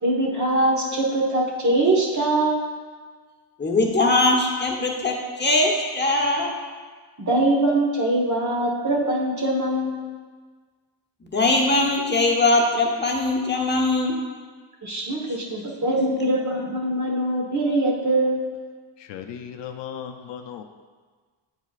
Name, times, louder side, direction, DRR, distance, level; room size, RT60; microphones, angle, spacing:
voice 1, 0.0-2.6 7.2-10.0 14.8-18.4, right 1 dB, 40° right, -2 dB, 1.4 m, -22 dB
voice 2, 3.6-6.5 11.2-14.2, left 2 dB, 25° left, 0 dB, 1.0 m, -21 dB
voice 3, 19.0-20.6, left 8 dB, 70° left, 5 dB, 0.6 m, -36 dB
8.4 x 4.8 x 2.4 m, 1.5 s
cardioid pair, 80°, 45 cm